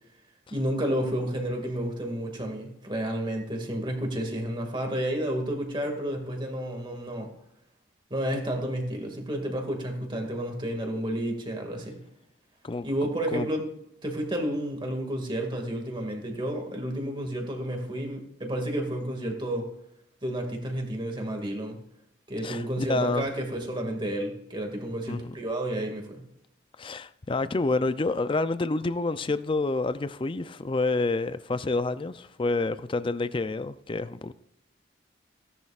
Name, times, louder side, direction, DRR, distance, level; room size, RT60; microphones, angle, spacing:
voice 1, 0.5-7.3 8.1-12.0 12.8-13.7 14.0-19.7 20.2-21.8 22.3-26.2, right 1 dB, 25° right, 2.1 m, -31 dB
voice 2, 22.4-23.3 25.1-25.3 26.8-34.3, left 3 dB, 25° left, 0.4 m, -28 dB
17.0 x 10.5 x 2.4 m
head